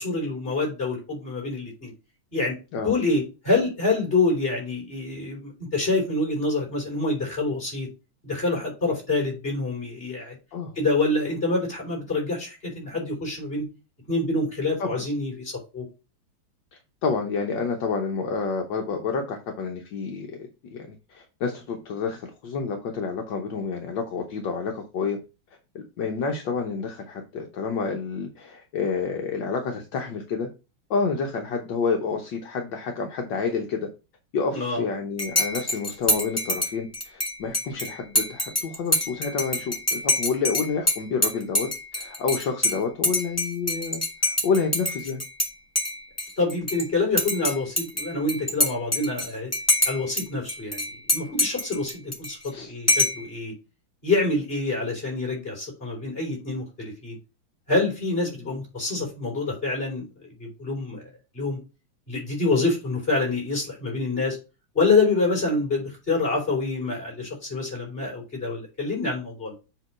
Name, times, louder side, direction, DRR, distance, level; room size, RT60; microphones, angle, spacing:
voice 1, 0.0-1.9 2.3-2.6 2.8-7.9 8.2-10.4 10.7-13.6 14.1-15.9 34.5-34.8 46.4-49.5 49.9-50.8 51.1-53.5 54.0-57.2 57.7-61.0 61.3-61.6 62.1-64.4 64.7-69.5, left 3 dB, 25° left, -1 dB, 3.9 m, -26 dB
voice 2, 17.0-20.4 20.7-20.8 21.1-25.2 25.7-30.5 30.9-33.9 34.3-45.2 52.5-52.7, left 5 dB, 70° left, 3 dB, 1.6 m, -29 dB
Dishes pots and pans / Cutlery silverware / Chink clink, 35.2-45.5 45.8-46.8 47.2-50.2 50.5-52.5 52.9-53.3, left 1 dB, 10° left, 1.1 m, -26 dB
7.6 x 3.0 x 6.0 m, 0.29 s
omnidirectional pair, 2.2 m